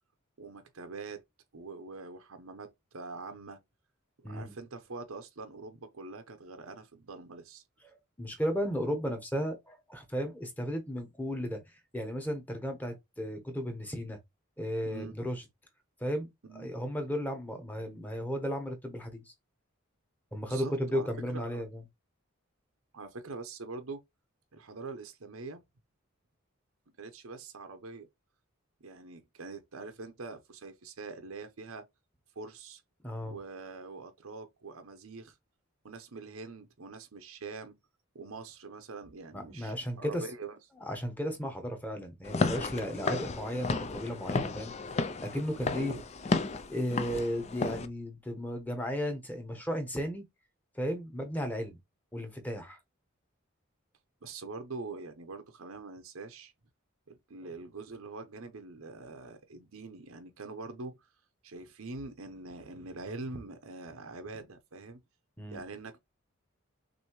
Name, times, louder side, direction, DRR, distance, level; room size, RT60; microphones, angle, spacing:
voice 1, 0.4-1.2 1.5-3.6 4.2-7.6 14.8-15.1 16.4-16.7 20.5-21.6 22.9-24.0 24.5-25.6 27.0-28.1 28.8-31.9 32.3-32.8 33.2-35.4 35.8-37.8 38.1-40.6 42.9-43.2 45.7-46.0 54.2-56.5 57.1-61.1 61.4-65.0 65.5-66.0, right 3 dB, 85° right, 0.8 m, -44 dB
voice 2, 8.2-11.6 11.9-14.2 14.6-15.4 16.0-16.3 16.5-19.2 20.3-21.8 33.0-33.4 39.3-40.2 40.8-44.7 45.2-46.0 46.7-50.2 50.7-51.8 52.1-52.8 65.4-65.6, equal, 10° left, 1.0 m, -34 dB
Walk footsteps / Siren, 42.2-47.9, left 3 dB, 30° left, 0.5 m, -33 dB
6.1 x 2.7 x 3.1 m
head